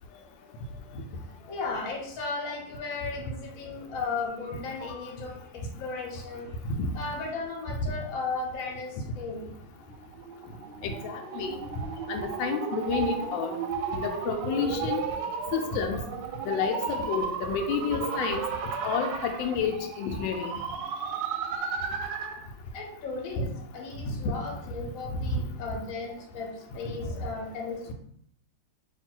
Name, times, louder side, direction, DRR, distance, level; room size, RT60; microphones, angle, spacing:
voice 1, 0.1-6.6 6.9-9.5 22.7-27.9, left 4 dB, 55° left, 0 dB, 1.1 m, -36 dB
sound 1, 9.7-22.4, right 6 dB, 75° right, 1.1 m, -34 dB
voice 2, 10.8-11.6 12.1-13.5 14.2-15.0 15.5-16.0 16.4-18.4 18.8-20.5 25.1-25.3, left 6 dB, 75° left, 4 dB, 1.2 m, -30 dB
3.0 x 2.6 x 4.3 m, 0.70 s
omnidirectional pair, 2.2 m